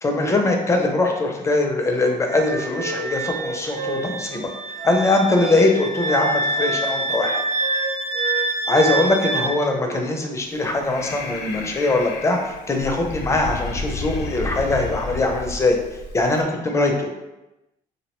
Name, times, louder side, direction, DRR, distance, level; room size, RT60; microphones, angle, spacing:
voice 1, 0.0-4.5 4.8-7.4 8.7-15.8 16.1-17.1, left 2 dB, 15° left, 2 dB, 0.4 m, -21 dB
Wind instrument woodwind instrument, 1.9-5.6 6.0-8.5 8.7-10.1, right 3 dB, 50° right, 0.4 m, -33 dB
Wind instrument woodwind instrument 2, 2.3-9.5, right 2 dB, 80° right, 0.9 m, -26 dB
Breathing, 10.4-16.4, left 3 dB, 85° left, 0.4 m, -32 dB
2.5 x 2.0 x 2.9 m, 0.97 s
cardioid pair, 110°, 17 cm